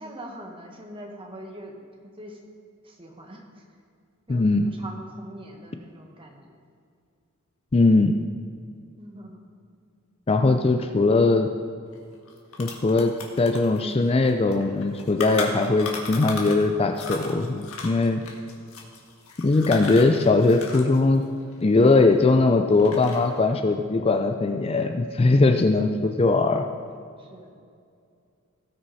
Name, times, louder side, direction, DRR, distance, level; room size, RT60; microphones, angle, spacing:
voice 1, 0.0-1.8 2.2-2.4 2.8-3.6 4.3-6.4 9.0-9.5 25.2-25.6 27.2-27.5, right 1 dB, 25° right, 1 dB, 1.5 m, -42 dB
voice 2, 4.3-4.7 7.7-8.2 10.3-11.5 12.6-18.2 19.4-21.2 21.6-26.6, left 3 dB, 25° left, 5 dB, 0.4 m, -20 dB
sound 1, 11.9-12.0 12.3-16.7 16.9-21.0 21.2-22.4 22.7-23.4, left 4 dB, 70° left, 1.6 m, -36 dB
17.0 x 6.4 x 4.2 m, 2.3 s
head